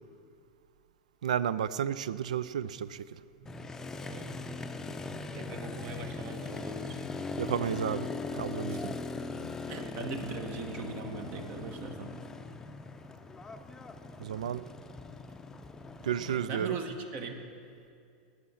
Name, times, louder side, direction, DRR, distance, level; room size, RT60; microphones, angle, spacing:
voice 1, 1.2-3.1 7.4-8.1 8.4-8.9 14.2-14.6 16.0-16.8, right 9 dB, 90° right, 17 dB, 0.4 m, -32 dB
voice 2, 3.4-3.7 4.1-4.4 5.3-7.0 8.7-9.0 9.6-12.2 16.2-17.4, right 3 dB, 50° right, 5 dB, 1.4 m, -40 dB
Motorcycle, 3.5-16.5, left 3 dB, 15° left, 0.6 m, -40 dB
19.0 x 6.5 x 5.7 m, 2.3 s
hypercardioid pair, 120°, 4 cm